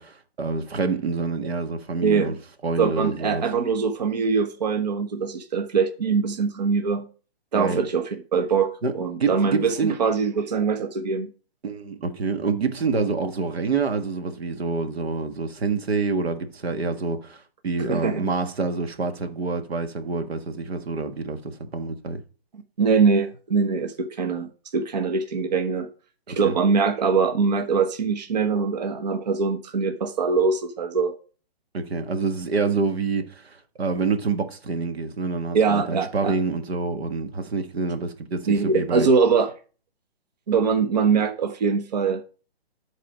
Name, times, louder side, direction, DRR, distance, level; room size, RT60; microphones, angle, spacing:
voice 1, 0.0-2.4 2.6-3.4 7.5-7.9 8.8-8.9 9.2-9.9 11.6-22.2 26.3-26.6 31.7-39.1, right 4 dB, 85° right, 1.5 m, -27 dB
voice 2, 2.0-2.3 2.8-7.1 7.5-11.3 17.8-18.2 22.8-25.9 26.3-31.2 35.5-36.3 38.5-39.5 40.5-42.2, right 5 dB, 45° right, 0.8 m, -23 dB
10.5 x 4.1 x 5.0 m
hypercardioid pair, 175°, 30 cm